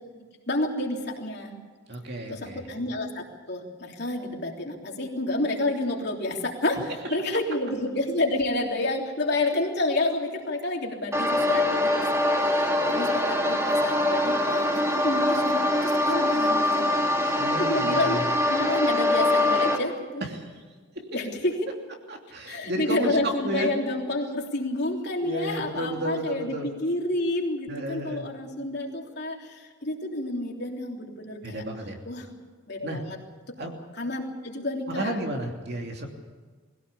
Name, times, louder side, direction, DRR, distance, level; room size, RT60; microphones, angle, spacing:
voice 1, 0.5-1.5 2.3-11.9 12.3-14.7 15.0-17.3 17.6-18.2 18.5-20.2 21.1-21.7 22.5-31.6 32.0-32.3 32.7-33.2 33.9-35.2, left 2 dB, 50° left, 0 dB, 3.3 m, -29 dB
voice 2, 1.9-2.6 17.4-18.2 20.3-20.4 22.1-23.7 25.2-26.7 27.7-28.3 31.4-32.0 32.8-33.0 33.6-33.7 34.9-36.1, right 1 dB, 50° right, 2 dB, 2.9 m, -32 dB
sound 1, 11.1-19.8, left 1 dB, 15° right, 2.0 m, -23 dB
22.0 x 16.5 x 8.4 m, 1.5 s
head